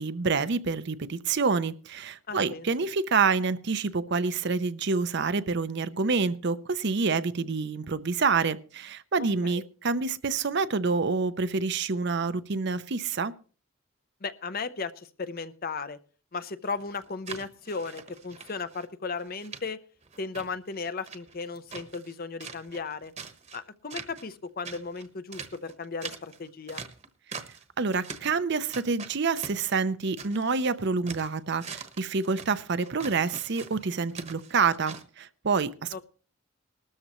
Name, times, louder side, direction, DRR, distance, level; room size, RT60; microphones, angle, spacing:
voice 1, 0.0-13.3 27.8-36.0, right 4 dB, 55° right, 0.6 m, -27 dB
voice 2, 2.3-2.7 9.2-9.6 14.2-16.0 16.3-19.8 20.2-23.1 23.5-26.8 35.9-36.0, left 4 dB, 45° left, 0.7 m, -36 dB
sound 1, 16.7-18.9 19.2-19.6 20.0-22.1 22.4-23.6 23.9-24.4 24.6-27.6 27.9-28.4 28.7-30.6 30.9-35.0, right 5 dB, 35° right, 1.1 m, -43 dB
19.0 x 13.0 x 3.1 m
head